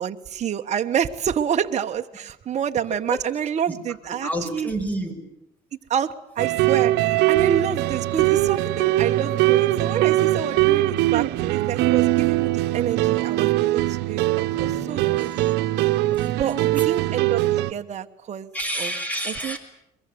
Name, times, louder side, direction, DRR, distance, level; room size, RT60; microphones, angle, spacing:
voice 1, 0.0-4.7 5.9-15.3 16.4-18.5 18.8-18.9 19.2-19.6, right 8 dB, 45° right, 5 dB, 1.2 m, -28 dB
voice 2, 4.2-5.1 14.5-15.2 16.1-16.4 18.5-19.6, right 1 dB, 10° left, 7 dB, 6.3 m, -30 dB
sound 1, 6.4-17.7, right 16 dB, 90° right, 1.0 m, -21 dB
22.5 x 22.5 x 9.5 m, 0.80 s
cardioid pair, 110°, 17 cm